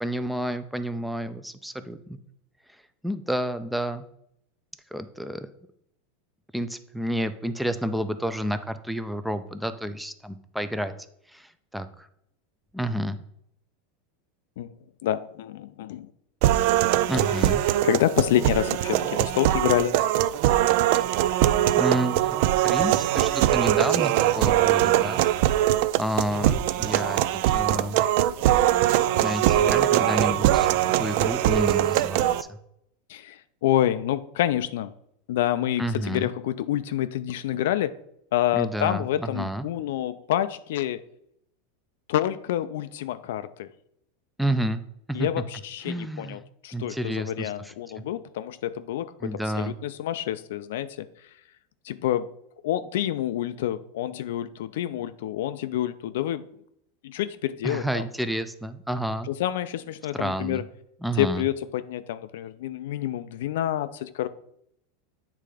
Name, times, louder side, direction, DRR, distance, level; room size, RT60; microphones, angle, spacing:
voice 1, 0.0-2.2 3.0-4.0 4.9-5.5 6.5-10.9 11.3-12.1 12.7-13.2 17.1-17.6 21.7-22.4 22.6-25.2 26.0-27.2 27.5-28.0 29.2-32.6 35.8-36.3 38.5-39.7 44.4-44.8 45.1-45.3 45.8-46.4 46.7-48.0 49.2-49.8 57.6-59.3 60.1-60.6 61.0-61.4, right 1 dB, ahead, 0.5 m, -30 dB
voice 2, 15.0-16.1 17.8-20.0 33.1-34.9 35.3-37.9 38.3-41.0 42.1-43.7 45.1-51.1 51.9-52.3 52.6-56.4 57.0-58.0 59.3-60.6 61.2-64.3, left 12 dB, 75° left, 0.4 m, -28 dB
sound 1, 16.4-32.4, right 13 dB, 60° right, 0.3 m, -22 dB
8.3 x 3.3 x 4.9 m
supercardioid pair, 130°, 0 cm